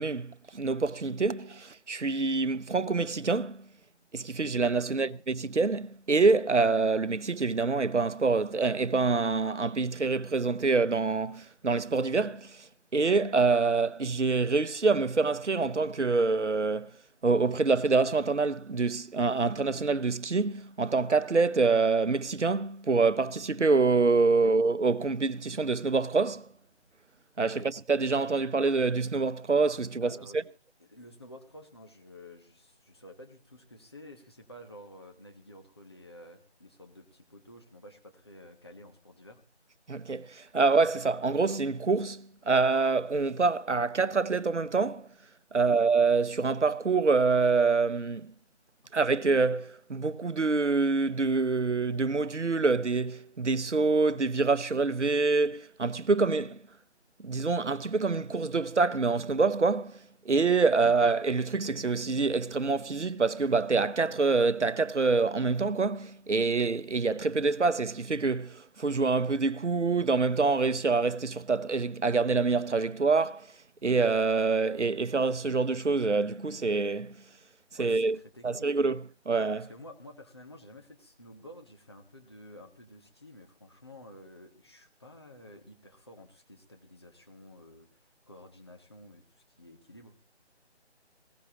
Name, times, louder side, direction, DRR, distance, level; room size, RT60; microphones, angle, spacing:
voice 1, 0.0-3.7 4.1-16.9 17.2-26.5 27.4-30.4 39.9-45.1 45.5-48.3 48.9-56.6 57.2-73.5 73.8-77.2 77.7-78.2 78.4-79.7, right 4 dB, 90° right, 0.8 m, -26 dB
voice 2, 30.0-30.4 30.9-39.4 45.5-45.8 48.8-48.9 77.8-78.7 79.7-87.9 88.3-89.2 89.6-90.2, left 1 dB, 25° left, 1.1 m, -51 dB
20.5 x 17.0 x 2.9 m
figure-of-eight pair, 160°, 34 cm